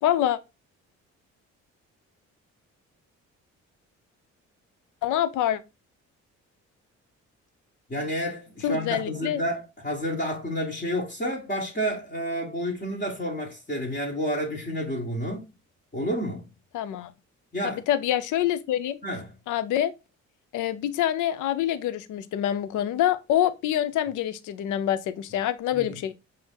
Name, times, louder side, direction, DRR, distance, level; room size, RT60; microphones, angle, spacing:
voice 1, 0.0-0.4 5.0-5.6 8.6-9.4 16.7-17.1 17.6-19.0 19.5-19.9 20.5-26.1, left 11 dB, 80° left, 0.5 m, -26 dB
voice 2, 7.9-15.5 15.9-16.5 17.5-17.8 19.0-19.3 25.7-26.0, equal, 30° left, 1.4 m, -30 dB
5.1 x 2.8 x 3.6 m
cardioid pair, 90°, 30 cm